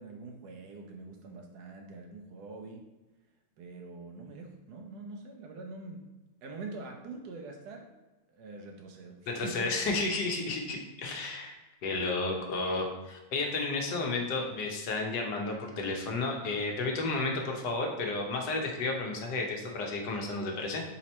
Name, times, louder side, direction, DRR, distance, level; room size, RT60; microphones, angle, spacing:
voice 1, 0.0-2.8 3.6-6.0 6.4-7.9 8.3-9.7 12.1-12.4, right 3 dB, 75° right, 2 dB, 1.2 m, -44 dB
voice 2, 9.3-11.5 11.8-20.8, left 3 dB, 85° left, 1 dB, 1.5 m, -32 dB
4.2 x 3.0 x 4.2 m, 1.1 s
omnidirectional pair, 1.8 m